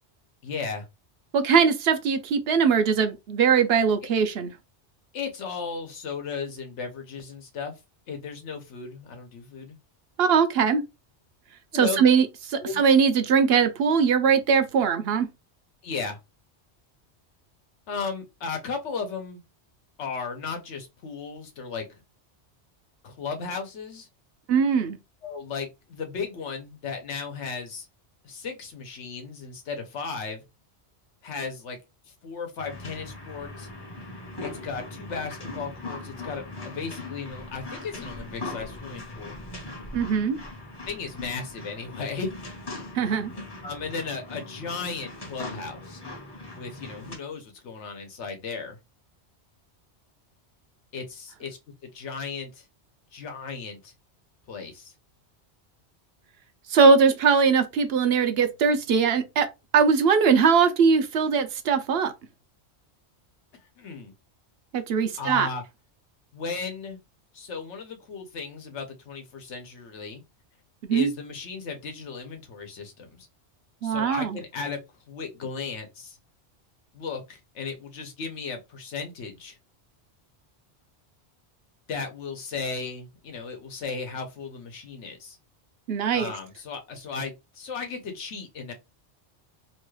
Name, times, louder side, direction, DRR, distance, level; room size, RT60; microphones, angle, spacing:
voice 1, 0.4-0.9 5.1-7.7 8.1-9.8 11.7-12.0 12.6-12.8 15.8-16.2 17.9-19.4 20.0-22.0 23.0-24.1 25.2-27.9 28.2-30.4 31.2-31.8 32.0-33.7 34.4-39.4 40.9-42.3 43.6-46.0 46.6-48.8 50.9-52.6 53.1-53.9 54.5-54.9 63.8-64.1 65.2-65.6 66.3-67.0 67.3-70.2 70.9-73.3 73.8-74.8 75.1-76.2 76.9-79.6 81.9-85.4 86.1-88.7, left 5 dB, 85° left, 1.1 m, -35 dB
voice 2, 1.3-4.5 10.2-10.8 11.7-15.3 24.5-25.0 39.9-40.4 42.9-43.3 56.7-59.5 59.7-62.1 64.7-65.5 70.9-71.1 73.8-74.4 85.9-86.3, right 6 dB, 70° right, 0.8 m, -21 dB
sound 1, 32.6-47.2, left 2 dB, 25° left, 0.7 m, -40 dB
3.0 x 2.3 x 3.1 m
omnidirectional pair, 1.2 m